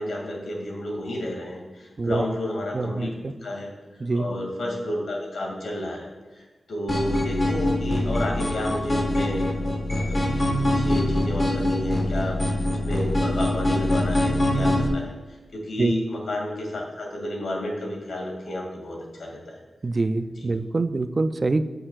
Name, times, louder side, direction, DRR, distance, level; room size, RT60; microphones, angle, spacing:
voice 1, 0.0-3.1 3.4-3.7 4.1-6.1 6.3-19.6 20.4-20.5, left 1 dB, 70° left, 0 dB, 2.2 m, -31 dB
voice 2, 2.7-3.1 4.0-4.3 15.8-16.0 19.8-21.6, right 3 dB, 35° right, 11 dB, 0.4 m, -24 dB
sound 1, 6.9-14.9, left 1 dB, 35° left, 1.4 m, -24 dB
14.5 x 6.5 x 2.4 m, 1.2 s
wide cardioid pair, 170°, 0 cm